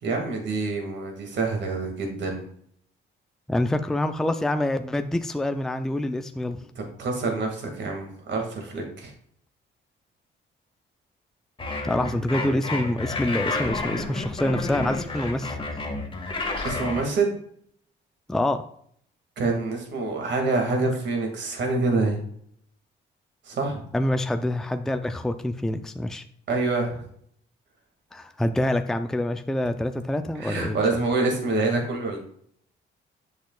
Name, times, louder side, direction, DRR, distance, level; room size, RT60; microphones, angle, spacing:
voice 1, 0.0-2.5 6.8-9.1 16.6-17.3 19.4-22.2 23.5-23.8 26.5-27.0 30.4-32.2, right 3 dB, 65° right, 2 dB, 2.1 m, -26 dB
voice 2, 3.5-6.6 11.8-15.6 18.3-18.6 23.9-26.2 28.1-31.0, left 1 dB, ahead, 8 dB, 0.4 m, -26 dB
sound 1, 11.6-17.0, left 2 dB, 25° left, 1.7 m, -30 dB
8.1 x 6.3 x 2.3 m, 0.65 s
cardioid pair, 90°, 20 cm